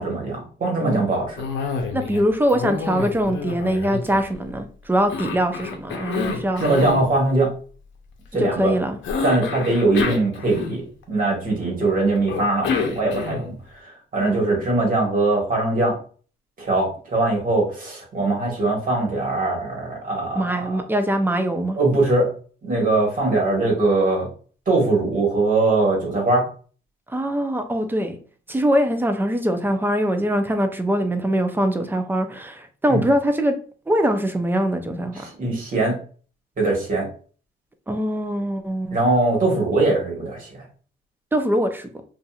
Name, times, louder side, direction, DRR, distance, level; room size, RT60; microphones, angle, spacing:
voice 1, 0.0-1.4 6.6-7.5 8.3-8.7 9.2-16.0 16.6-20.8 21.8-22.3 22.6-24.3 24.7-26.4 32.9-33.0 35.1-35.9 36.6-37.1 38.9-40.6, right 2 dB, 45° right, 1.4 m, -21 dB
Cough, 1.4-2.2 2.5-4.6 5.1-7.1 9.0-11.0 12.3-13.6, left 5 dB, 75° left, 0.7 m, -28 dB
voice 2, 1.9-6.6 8.4-9.0 14.2-14.6 20.4-21.8 27.1-28.2 28.5-33.5 33.9-35.2 37.9-39.0 41.3-42.0, equal, 10° right, 0.4 m, -22 dB
2.8 x 2.5 x 2.3 m
cardioid pair, 90°, 20 cm